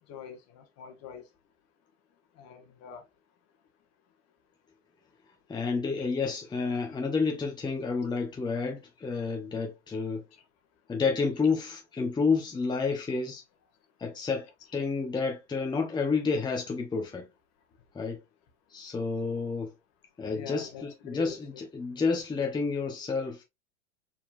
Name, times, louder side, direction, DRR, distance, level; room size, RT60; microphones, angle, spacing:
voice 1, 0.1-1.2 2.4-3.0 6.0-6.1 10.3-10.4 20.3-21.6, left 7 dB, 40° left, 1.6 m, -44 dB
voice 2, 5.5-10.2 10.9-13.4 14.0-17.3 17.9-18.2 18.7-19.7 20.2-23.4, left 4 dB, 10° left, 1.0 m, -30 dB
4.7 x 4.3 x 2.6 m
hypercardioid pair, 100°, 39 cm